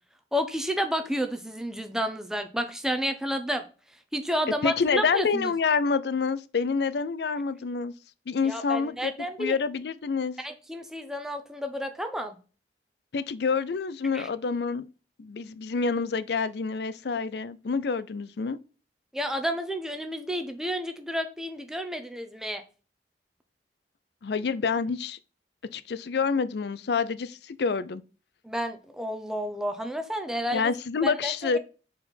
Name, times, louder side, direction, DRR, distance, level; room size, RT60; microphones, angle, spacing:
voice 1, 0.3-3.6 4.1-5.5 8.4-9.6 10.4-12.4 14.1-14.3 19.1-22.6 28.4-30.7 31.0-31.6, equal, 5° right, 0.7 m, -31 dB
voice 2, 4.6-7.9 8.3-9.1 9.4-10.3 13.1-14.8 15.2-18.6 24.2-25.2 25.7-28.0 30.5-31.6, left 5 dB, 65° left, 0.5 m, -27 dB
4.3 x 4.3 x 5.3 m
head